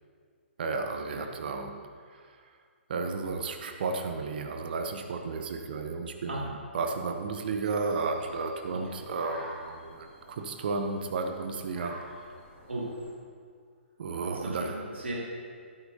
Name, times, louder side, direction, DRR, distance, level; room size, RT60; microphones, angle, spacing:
voice 1, 0.6-1.8 2.1-2.5 2.9-6.5 6.7-12.0 14.0-14.8, right 4 dB, 50° right, 5 dB, 0.8 m, -33 dB
sound 1, 7.6-13.1, left 1 dB, 5° right, 2.8 m, -50 dB
voice 2, 14.3-15.2, right 1 dB, 70° right, -3 dB, 2.4 m, -36 dB
13.0 x 11.5 x 2.7 m, 2.1 s
figure-of-eight pair, 125°, 7 cm